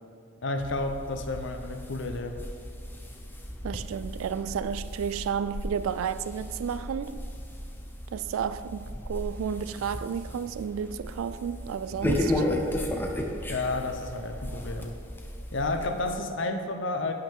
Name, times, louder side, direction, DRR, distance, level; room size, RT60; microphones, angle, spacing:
voice 1, 0.4-2.4 13.5-14.9 15.5-17.1, left 2 dB, 65° left, 0.8 m, -31 dB
sound 1, 0.6-16.1, left 1 dB, 10° left, 0.8 m, -35 dB
voice 2, 3.6-7.2 8.1-12.4, right 7 dB, 85° right, 0.3 m, -32 dB
11.0 x 9.3 x 3.6 m
head